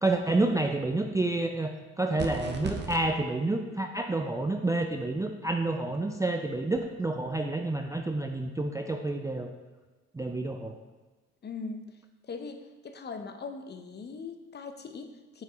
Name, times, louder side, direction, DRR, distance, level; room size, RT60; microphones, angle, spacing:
voice 1, 0.0-9.5 10.1-10.8, right 2 dB, 10° right, 4 dB, 0.3 m, -29 dB
sound 1, 2.2-3.0, right 5 dB, 35° right, 0.8 m, -34 dB
voice 2, 11.4-12.0 12.2-15.4, left 4 dB, 35° left, 7 dB, 0.7 m, -40 dB
5.7 x 4.7 x 3.9 m, 1.2 s
cardioid pair, 90°, 30 cm